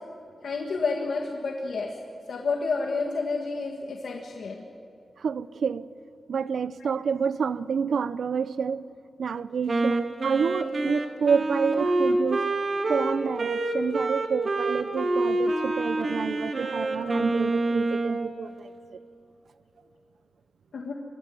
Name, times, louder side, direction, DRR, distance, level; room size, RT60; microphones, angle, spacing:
voice 1, 0.4-1.9 2.3-4.7 10.9-11.0 11.8-12.0 15.2-15.3 16.6-16.7 20.7-20.9, left 4 dB, 85° left, 1.6 m, -30 dB
voice 2, 5.2-5.9 6.3-8.9 9.2-12.5 12.9-18.7, right 6 dB, 80° right, 0.6 m, -28 dB
Wind instrument woodwind instrument, 9.7-18.3, right 2 dB, 45° right, 2.0 m, -27 dB
22.5 x 15.5 x 9.1 m
wide cardioid pair, 130°, 0 cm